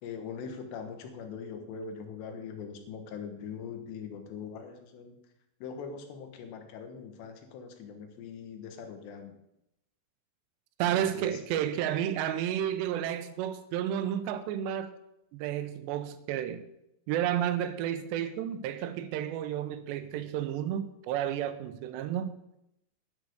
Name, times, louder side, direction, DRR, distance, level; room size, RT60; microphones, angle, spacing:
voice 1, 0.0-5.2 5.6-9.4 10.9-11.4, left 6 dB, 80° left, 3.4 m, -42 dB
voice 2, 10.8-14.9 15.3-16.7 17.1-22.4, right 10 dB, 80° right, 2.9 m, -31 dB
10.5 x 6.6 x 8.0 m
omnidirectional pair, 5.0 m